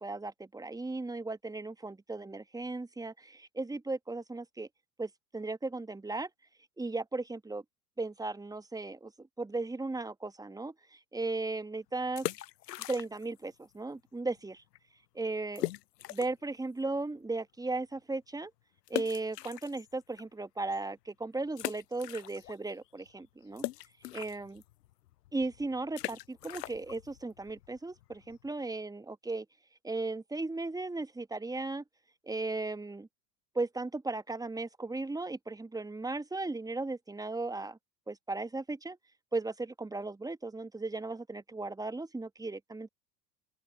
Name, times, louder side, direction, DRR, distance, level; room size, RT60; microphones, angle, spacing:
voice 1, 0.0-4.7 5.0-6.3 6.8-7.6 8.0-12.2 12.9-14.6 15.1-15.7 16.1-18.5 18.9-23.6 24.1-24.6 25.3-29.5 29.8-31.8 32.2-33.1 33.5-37.8 38.1-39.0 39.3-42.9, right 3 dB, 5° right, 1.3 m, -36 dB
sound 1, 12.0-13.4 13.7-13.8 14.4-14.5 14.7-14.8 15.6-16.5 17.0-17.1 18.9-20.2 20.7-20.8 21.5-22.7 23.0-28.5, left 15 dB, 75° left, 0.6 m, -40 dB
open air
figure-of-eight pair, 75°, 50 cm